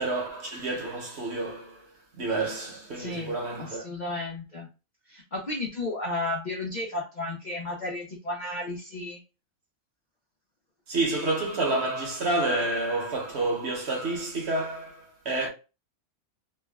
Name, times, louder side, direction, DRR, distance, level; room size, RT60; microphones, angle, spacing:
voice 1, 0.0-3.8 10.9-15.5, right 2 dB, 55° right, 1.0 m, -29 dB
voice 2, 2.9-3.3 3.6-4.7 5.1-9.2, left 2 dB, 55° left, 0.5 m, -33 dB
3.3 x 2.1 x 2.2 m
omnidirectional pair, 1.5 m